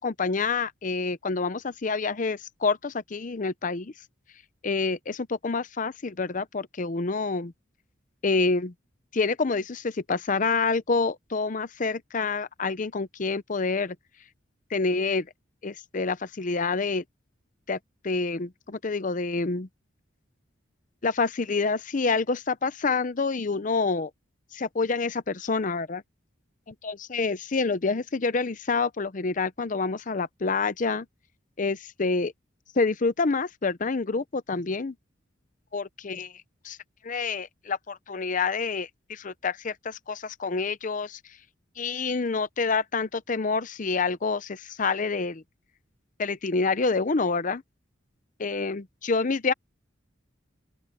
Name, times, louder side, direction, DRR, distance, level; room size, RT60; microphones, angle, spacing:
voice 1, 0.0-3.9 4.6-7.5 8.2-8.7 9.1-14.0 14.7-15.3 15.6-17.0 17.7-17.8 18.0-19.7 21.0-24.1 24.5-26.0 26.7-31.1 31.6-32.3 32.8-34.9 35.7-36.3 36.6-36.8 37.0-41.2 41.8-45.4 46.2-47.6 48.4-49.5, left 4 dB, 40° left, 0.6 m, -27 dB
open air
head